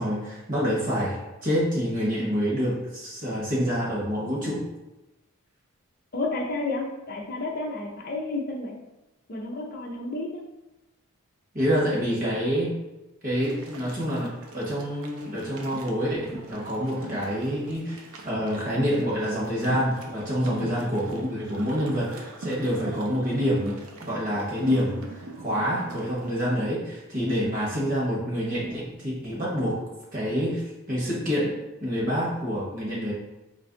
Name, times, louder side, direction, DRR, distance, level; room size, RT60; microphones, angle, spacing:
voice 1, 0.0-4.7 11.5-12.8 13.2-29.8 30.1-33.1, equal, 35° right, -5 dB, 1.0 m, -27 dB
voice 2, 6.1-8.7 9.3-10.4 20.5-20.7, left 2 dB, 40° left, 0 dB, 0.5 m, -31 dB
sound 1, 13.4-26.3, right 3 dB, 75° right, 0.5 m, -41 dB
2.9 x 2.5 x 3.7 m, 1.0 s
head